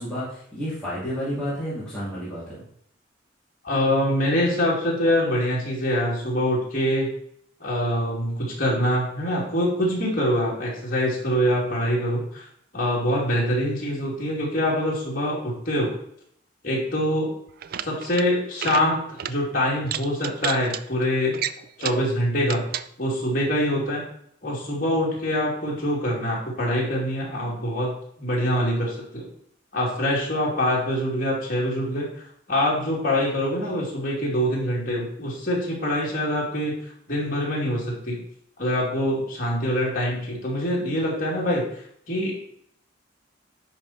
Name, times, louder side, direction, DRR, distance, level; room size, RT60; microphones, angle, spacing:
voice 1, 0.0-2.6, equal, 5° left, -11 dB, 3.0 m, -31 dB
voice 2, 3.6-7.1 7.6-12.5 12.7-16.0 16.6-17.3 17.8-21.4 21.8-22.6 23.0-24.0 24.4-27.9 28.2-29.3 29.7-36.7 37.1-38.2 38.6-41.6 42.1-42.3, equal, 45° left, -5 dB, 2.7 m, -24 dB
sound 1, 17.5-18.3 18.5-18.9 19.2-19.4 19.8-20.8 21.3-22.1 22.4-22.9, right 9 dB, 50° right, 0.3 m, -31 dB
10.5 x 4.5 x 4.3 m, 0.67 s
head